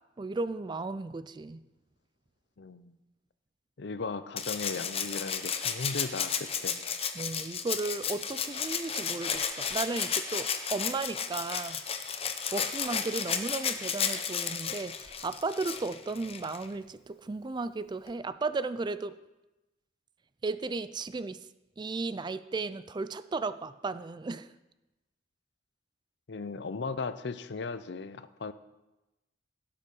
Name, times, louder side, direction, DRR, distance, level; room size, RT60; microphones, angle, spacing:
voice 1, 0.2-1.6 7.1-11.8 12.3-19.2 20.4-21.4 21.8-24.5, right 3 dB, 25° right, 14 dB, 0.4 m, -35 dB
voice 2, 2.6-3.0 3.8-6.8 26.3-28.5, left 4 dB, 65° left, 13 dB, 0.6 m, -37 dB
Rattle (instrument), 4.4-16.7 18.1-18.2, left 7 dB, 30° left, 0.8 m, -33 dB
17.0 x 6.9 x 5.4 m, 1.0 s
head